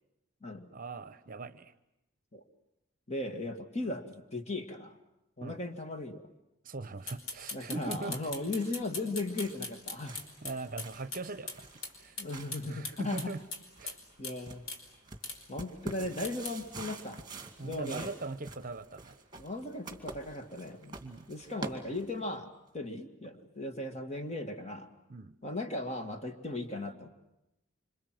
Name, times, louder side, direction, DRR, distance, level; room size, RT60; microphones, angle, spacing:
voice 1, 0.7-1.7 3.8-3.9 5.4-5.6 6.6-8.2 10.4-11.7 12.0-12.2 12.7-13.4 13.8-14.0 17.6-19.1 21.0-21.3 25.1-25.3, right 3 dB, 40° right, 13 dB, 0.9 m, -40 dB
voice 2, 3.1-4.0 4.3-4.9 5.4-6.3 7.5-10.2 12.2-13.4 14.2-14.6 15.5-17.2 17.6-18.1 19.3-21.0 21.3-22.5 22.7-24.9 25.4-27.1, left 2 dB, 30° left, 6 dB, 2.1 m, -37 dB
sound 1, 7.1-11.2 11.5-11.6 11.8-11.9 12.2-14.0 14.2-14.4 14.7-14.8 15.2-15.4 16.2-16.5, left 3 dB, 75° left, 5.1 m, -40 dB
sound 2, 8.2-22.4, right 3 dB, 20° right, 2.3 m, -48 dB
27.0 x 26.5 x 7.7 m, 0.88 s
head